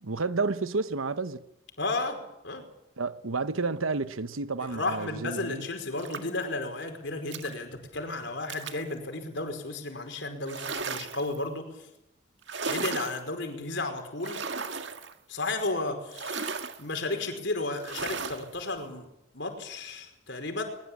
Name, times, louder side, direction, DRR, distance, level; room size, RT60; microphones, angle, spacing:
voice 1, 0.0-1.4 3.0-5.7, right 3 dB, 90° right, 1.1 m, -30 dB
voice 2, 1.8-2.6 4.7-11.9 12.6-14.4 15.3-19.1 19.3-20.6, left 2 dB, 60° left, 4.9 m, -33 dB
sound 1, 6.0-6.4 7.3-7.5 8.5-8.9 10.4-11.4 12.4-13.2 14.2-15.1 16.1-16.8 17.8-18.5, right 5 dB, 60° right, 1.9 m, -35 dB
21.5 x 21.0 x 8.8 m
head